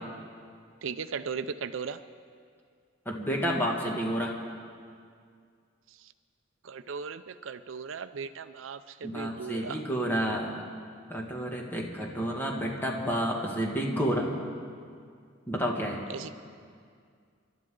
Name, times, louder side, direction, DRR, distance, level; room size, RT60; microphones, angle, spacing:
voice 1, 0.8-2.0 6.6-9.8 16.1-16.3, right 6 dB, 75° right, 12 dB, 0.5 m, -37 dB
voice 2, 3.1-4.3 9.0-10.6 11.1-14.3 15.5-16.0, equal, 10° left, -1 dB, 2.0 m, -30 dB
29.5 x 12.0 x 3.8 m, 2.2 s
head